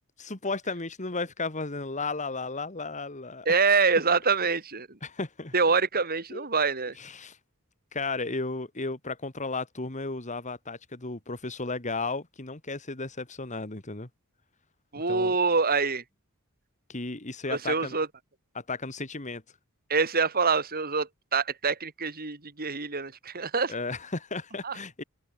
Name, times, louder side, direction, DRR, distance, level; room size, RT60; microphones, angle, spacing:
voice 1, 0.2-3.5 5.0-5.5 6.3-6.5 7.0-7.4 7.9-14.1 15.1-15.4 16.9-18.0 18.5-19.4 23.7-25.0, left 3 dB, 35° left, 2.3 m, -34 dB
voice 2, 3.4-5.0 5.5-7.0 14.9-16.0 17.5-18.1 19.9-23.7 24.6-24.8, right 4 dB, 45° right, 3.3 m, -25 dB
head